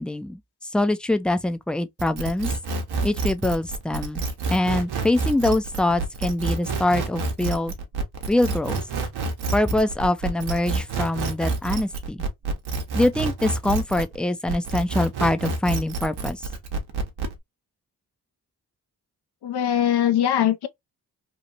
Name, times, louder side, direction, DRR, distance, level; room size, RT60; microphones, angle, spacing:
voice 1, 0.0-2.5 3.0-4.2 4.5-7.7 8.3-8.8 9.5-12.2 12.9-16.4, left 1 dB, 5° left, 0.3 m, -24 dB
sound 1, 2.0-14.2 14.5-17.3, right 3 dB, 80° right, 0.9 m, -28 dB
voice 2, 19.4-20.7, left 10 dB, 80° left, 0.6 m, -21 dB
2.8 x 2.4 x 2.7 m
supercardioid pair, 45°, 39 cm